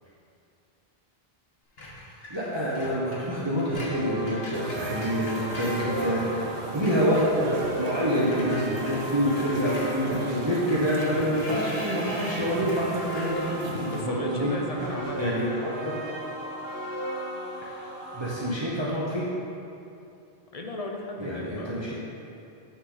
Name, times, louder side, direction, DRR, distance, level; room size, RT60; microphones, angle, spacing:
Screech, 1.8-6.5 6.7-14.2, left 1 dB, 70° left, 1.6 m, -43 dB
voice 1, 2.3-14.5 15.2-15.9 17.6-17.8 18.1-19.3 21.2-21.9, equal, 25° right, -8 dB, 1.2 m, -27 dB
sound 1, 3.7-18.5, right 1 dB, 80° right, 1.1 m, -36 dB
sound 2, 4.5-14.0, right 4 dB, 60° right, 0.7 m, -37 dB
voice 2, 13.9-15.3 20.5-21.9, left 2 dB, 40° left, 1 dB, 0.8 m, -35 dB
9.1 x 5.9 x 4.1 m, 2.7 s
omnidirectional pair, 1.0 m